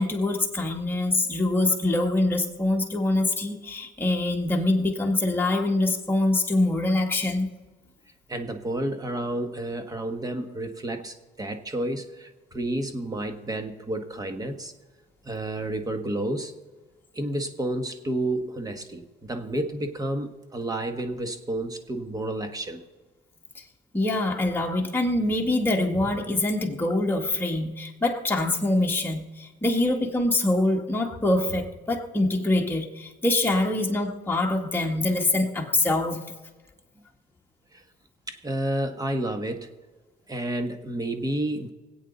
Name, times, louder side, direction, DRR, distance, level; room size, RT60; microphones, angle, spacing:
voice 1, 0.0-7.5 23.6-23.7 23.9-36.2, left 2 dB, 10° left, 0 dB, 2.0 m, -24 dB
voice 2, 8.3-14.7 15.2-16.5 17.1-22.8 37.7-37.8 38.3-39.7 40.3-41.7, right 1 dB, 20° right, 7 dB, 1.5 m, -30 dB
25.0 x 8.6 x 4.1 m, 1.3 s
cardioid pair, 110°, 17 cm